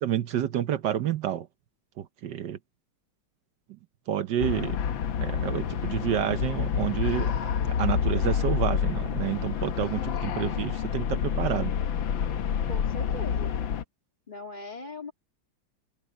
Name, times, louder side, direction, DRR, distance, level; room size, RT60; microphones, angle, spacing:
voice 1, 0.0-1.5 2.0-2.6 4.1-4.8 5.2-7.3 7.7-11.7, right 10 dB, 65° right, 1.3 m, -29 dB
sound 1, 4.4-13.8, left 8 dB, 65° left, 1.8 m, -28 dB
voice 2, 12.7-13.5 14.3-15.1, left 2 dB, 20° left, 2.3 m, -39 dB
omnidirectional pair, 2.4 m